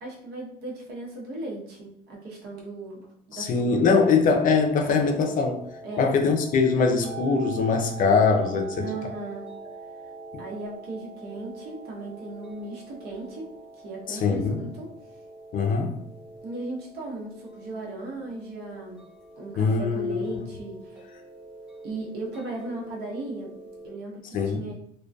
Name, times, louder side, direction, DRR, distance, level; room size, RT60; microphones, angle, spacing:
voice 1, 0.0-4.0 5.8-6.2 8.8-9.4 10.4-13.5 13.8-14.9 16.4-19.0 19.4-21.0 21.8-23.5 23.8-24.7, right 2 dB, 70° right, -3 dB, 0.9 m, -37 dB
voice 2, 3.3-5.6 6.0-8.9 10.3-10.4 14.1-14.6 15.5-16.0 19.6-20.4 24.3-24.6, left 5 dB, 55° left, 4 dB, 0.4 m, -22 dB
sound 1, 4.2-23.9, right 3 dB, 5° right, 1.1 m, -43 dB
2.4 x 2.2 x 2.3 m, 0.71 s
cardioid pair, 110°, 17 cm